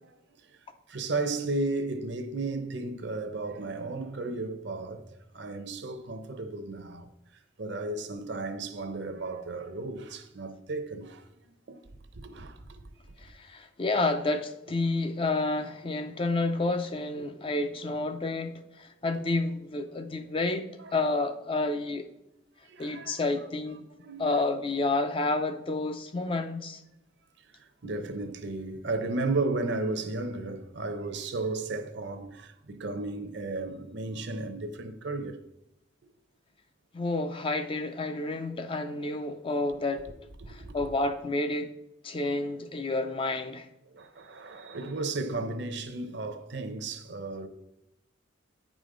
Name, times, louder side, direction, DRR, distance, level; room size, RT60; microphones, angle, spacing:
voice 1, 0.9-7.1 7.6-11.8 12.1-13.2 15.8-15.9 17.2-17.4 19.1-19.2 20.8-21.0 22.6-23.5 24.0-24.4 27.4-35.4 40.4-40.9 43.9-47.5, right 3 dB, 55° right, 0.7 m, -34 dB
voice 2, 13.2-22.1 22.8-23.8 24.2-26.8 36.9-40.1 40.5-41.7 42.0-43.7, left 2 dB, 25° left, 0.4 m, -30 dB
9.2 x 5.0 x 3.8 m
head